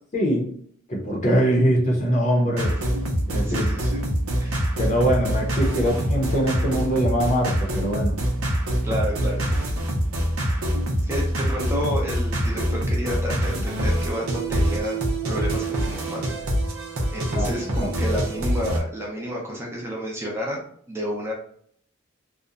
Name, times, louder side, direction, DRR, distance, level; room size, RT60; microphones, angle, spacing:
voice 1, 0.1-0.5 0.9-2.8 3.3-3.7 4.8-8.2 17.3-17.8, equal, 35° left, -2 dB, 0.7 m, -23 dB
sound 1, 2.6-18.8, equal, 75° right, 0.6 m, -25 dB
voice 2, 3.4-4.0 4.4-4.7 8.8-9.6 10.5-10.7 11.0-15.0 15.3-16.2 17.1-21.3, equal, 10° right, -3 dB, 0.6 m, -30 dB
2.8 x 2.1 x 2.4 m, 0.62 s
head